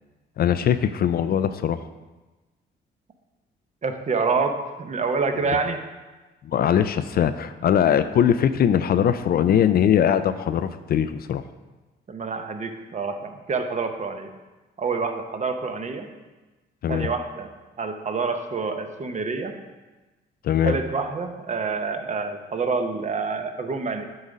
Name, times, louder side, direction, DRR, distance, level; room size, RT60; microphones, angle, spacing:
voice 1, 0.4-1.8 6.4-11.4 16.8-17.1 20.4-20.8, left 9 dB, 50° left, 11 dB, 0.4 m, -21 dB
voice 2, 3.8-5.8 12.1-14.3 14.8-16.1 16.9-17.5 17.8-19.6 20.6-24.1, right 4 dB, 35° right, 6 dB, 0.8 m, -27 dB
8.1 x 3.7 x 5.2 m, 1.2 s
cardioid pair, 90°, 20 cm